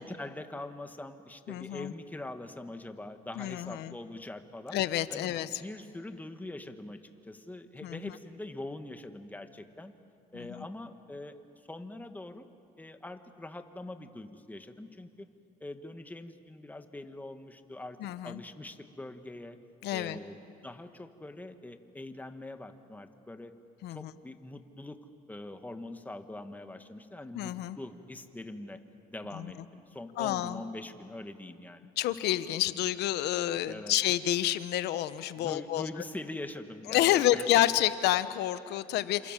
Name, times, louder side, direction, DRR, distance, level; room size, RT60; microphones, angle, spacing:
voice 1, 0.0-4.8 5.1-9.9 10.3-11.4 11.7-12.5 12.8-15.3 15.6-18.0 18.2-19.6 19.9-20.4 20.6-23.5 23.9-25.0 25.3-28.8 29.1-31.9 33.6-34.0 35.4-37.5, left 2 dB, 10° left, 7 dB, 1.6 m, -43 dB
voice 2, 1.5-1.9 3.4-3.9 4.7-5.6 7.8-8.1 10.5-10.6 18.0-18.4 19.8-20.2 23.8-24.1 27.3-27.8 29.3-29.5 30.2-30.6 32.0-35.9 36.9-39.3, left 13 dB, 80° left, 13 dB, 1.1 m, -29 dB
28.5 x 27.5 x 7.5 m, 2.5 s
cardioid pair, 110°, 17 cm